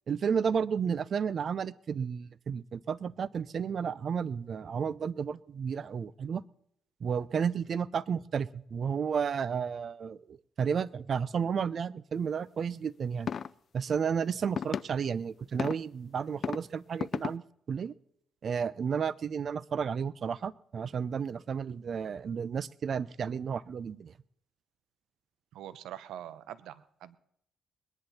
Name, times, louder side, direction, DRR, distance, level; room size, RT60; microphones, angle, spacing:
voice 1, 0.1-6.4 7.0-13.3 13.7-17.9 18.4-24.1, right 6 dB, 50° right, 19 dB, 0.6 m, -32 dB
sound 1, 13.3-13.5 14.6-14.8 15.6-15.8 16.4-16.6 17.0-17.3, left 7 dB, 50° left, 0.4 m, -32 dB
voice 2, 25.5-27.2, right 11 dB, 85° right, 15 dB, 0.9 m, -44 dB
21.5 x 10.5 x 4.2 m, 0.70 s
cardioid pair, 90°, 0 cm